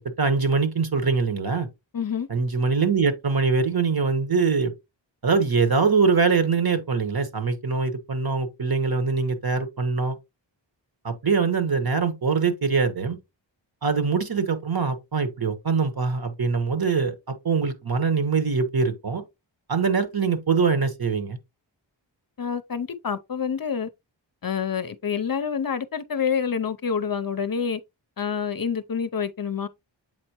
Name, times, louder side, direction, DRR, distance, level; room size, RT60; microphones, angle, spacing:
voice 1, 0.2-1.7 2.3-4.7 5.2-10.2 11.0-13.2 13.8-19.2 19.7-21.4, right 5 dB, 50° right, 1.2 m, -23 dB
voice 2, 1.9-2.3 22.4-23.9 24.4-27.8 28.2-29.7, left 7 dB, 50° left, 0.6 m, -27 dB
7.8 x 4.3 x 2.9 m
wide cardioid pair, 75°, 46 cm